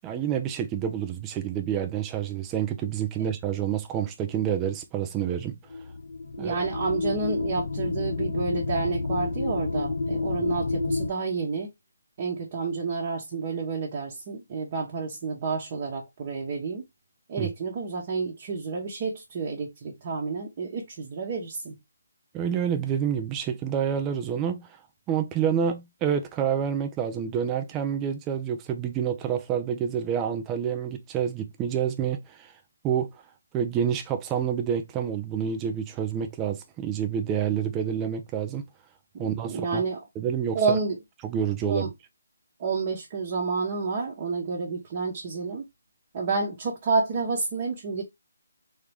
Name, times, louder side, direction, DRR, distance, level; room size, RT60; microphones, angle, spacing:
voice 1, 0.0-5.5 6.4-6.5 17.4-17.5 22.3-24.7 25.1-32.5 32.8-33.1 33.5-38.6 39.2-39.8 40.2-40.8 41.2-41.9, right 8 dB, 15° right, 0.5 m, -28 dB
sound 1, 5.7-11.1, left 3 dB, 65° left, 0.6 m, -29 dB
voice 2, 6.4-11.7 12.2-16.8 17.3-21.8 39.1-40.0 40.5-41.0 41.7-41.9 42.6-45.6 46.1-48.0, right 4 dB, 30° right, 1.0 m, -29 dB
3.7 x 2.9 x 3.4 m
hypercardioid pair, 165°, 0 cm